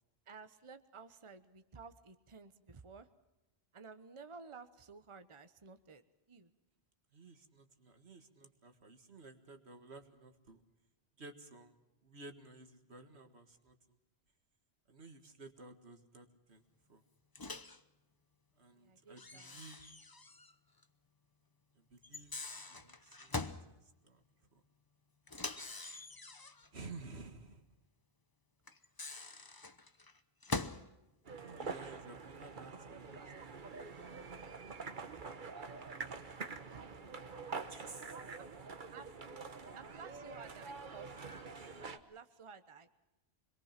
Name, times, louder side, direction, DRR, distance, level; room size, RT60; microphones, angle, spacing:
voice 1, 0.3-3.1 3.7-6.5 18.7-19.6 36.3-37.4 38.4-39.1 39.7-41.3 41.9-42.9, right 5 dB, 30° right, 9 dB, 1.0 m, -54 dB
voice 2, 7.1-10.6 11.2-11.7 12.0-13.8 14.9-16.6 16.9-17.0 18.6-19.8 21.8-22.3 22.7-23.4 23.7-23.8 24.0-24.2 24.5-24.6 26.7-27.7 31.3-33.5 37.7-38.2, right 3 dB, 80° right, 6 dB, 2.1 m, -54 dB
Microwave oven, 17.4-17.8 19.2-20.5 20.8-20.9 22.0-23.7 25.3-26.7 28.7-30.9, left 3 dB, 20° left, 0.9 m, -43 dB
sound 1, 31.2-42.0, right 4 dB, 50° right, 1.3 m, -46 dB
26.5 x 22.0 x 5.9 m, 0.97 s
omnidirectional pair, 1.1 m